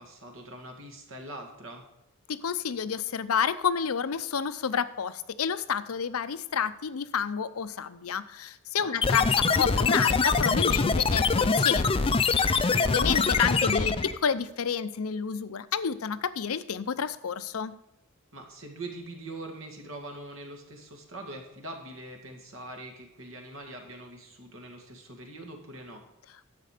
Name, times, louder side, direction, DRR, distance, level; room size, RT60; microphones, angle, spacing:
voice 1, 0.0-1.8 8.8-9.0 12.6-12.9 18.3-26.0, right 2 dB, 65° right, 3 dB, 2.2 m, -43 dB
voice 2, 2.3-12.6 12.8-17.8, left 7 dB, 85° left, 14 dB, 0.6 m, -30 dB
sound 1, 9.0-14.2, left 4 dB, 25° left, 0.5 m, -24 dB
10.5 x 7.6 x 5.0 m, 0.88 s
head